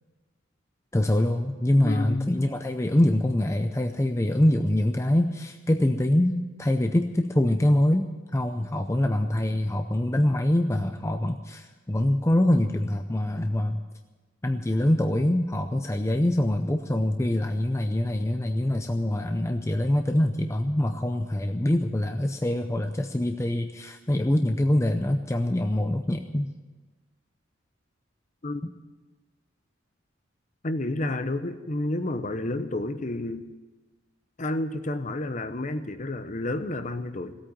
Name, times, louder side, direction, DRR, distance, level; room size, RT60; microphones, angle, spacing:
voice 1, 0.9-13.8 14.4-26.5, left 1 dB, 15° left, 6 dB, 0.5 m, -24 dB
voice 2, 1.8-2.5 28.4-28.6 30.6-33.5 34.4-37.4, left 2 dB, 40° left, 10 dB, 0.8 m, -30 dB
16.5 x 8.7 x 9.3 m, 1.2 s
head